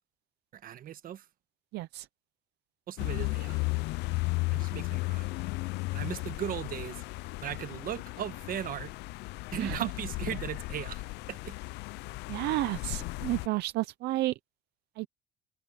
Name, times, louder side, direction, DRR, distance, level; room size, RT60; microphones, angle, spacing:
voice 1, 0.5-1.2 2.9-3.6 4.5-5.3 5.9-7.0 7.4-8.9 9.5-11.5, right 10 dB, 55° right, 1.4 m, -37 dB
voice 2, 1.7-2.1 9.6-9.9 12.3-14.3 15.0-15.1, right 17 dB, 80° right, 0.6 m, -31 dB
sound 1, 3.0-13.5, left 23 dB, 85° left, 0.5 m, -35 dB
cardioid pair, 110°, 17 cm